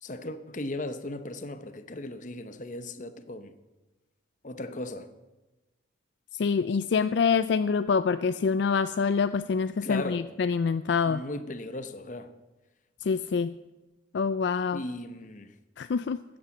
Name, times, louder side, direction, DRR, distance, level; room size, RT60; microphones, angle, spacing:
voice 1, 0.0-3.5 4.4-5.1 9.8-10.3 11.0-12.4 14.7-15.5, left 1 dB, 40° left, 0.8 m, -37 dB
voice 2, 6.4-11.2 13.0-13.5 14.1-14.8 15.8-16.2, left 5 dB, 65° left, 0.4 m, -26 dB
14.0 x 8.8 x 7.1 m
head